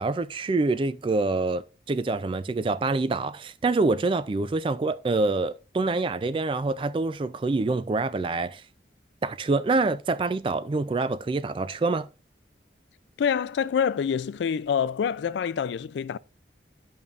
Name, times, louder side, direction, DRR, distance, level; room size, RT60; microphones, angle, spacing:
voice 1, 0.0-8.6 9.2-12.1, right 3 dB, 30° right, 0.3 m, -26 dB
voice 2, 13.2-16.2, left 7 dB, 80° left, 0.3 m, -26 dB
10.5 x 5.4 x 2.4 m
head